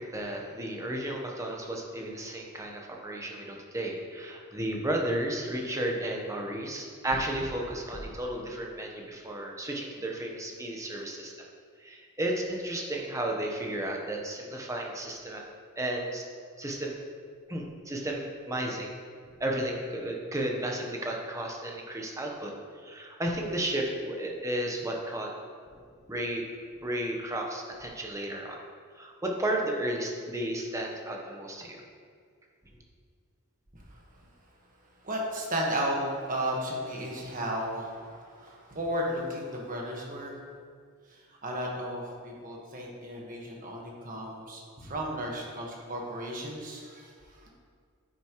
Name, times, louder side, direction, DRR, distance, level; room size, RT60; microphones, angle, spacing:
voice 1, 0.0-11.3 11.8-15.4 15.8-16.2 16.6-16.9 17.5-18.9 19.3-22.5 22.8-25.3 26.1-26.4 26.8-28.6 29.0-31.8, right 1 dB, 15° right, 0 dB, 1.0 m, -33 dB
voice 2, 33.7-34.3 35.0-40.4 41.1-47.5, equal, 40° right, -2 dB, 1.5 m, -34 dB
9.5 x 8.9 x 3.1 m, 2.1 s
head